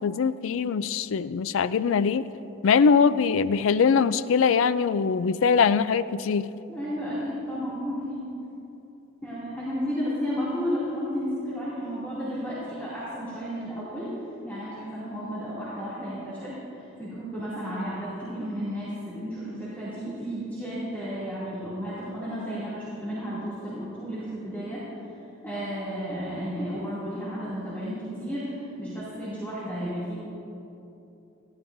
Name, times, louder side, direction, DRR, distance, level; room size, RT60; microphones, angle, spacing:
voice 1, 0.0-2.2 2.6-6.5, left 6 dB, 80° left, 15 dB, 0.4 m, -22 dB
voice 2, 6.7-8.2 9.2-14.1 14.4-24.8 25.4-30.2, equal, 10° left, -12 dB, 2.5 m, -33 dB
18.5 x 14.0 x 2.6 m, 2.9 s
head